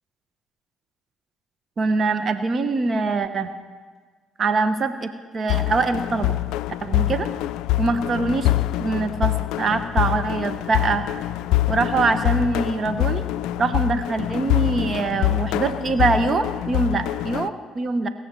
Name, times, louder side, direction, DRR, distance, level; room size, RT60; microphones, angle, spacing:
voice 1, 1.8-3.5 4.4-6.4 6.8-7.3 7.8-8.5 8.8-11.0 11.7-13.2 13.6-18.1, right 3 dB, 45° right, 10 dB, 1.0 m, -23 dB
sound 1, 5.5-17.5, left 16 dB, 75° left, 0.3 m, -25 dB
19.5 x 6.7 x 7.5 m, 1.5 s
hypercardioid pair, 55°, 0 cm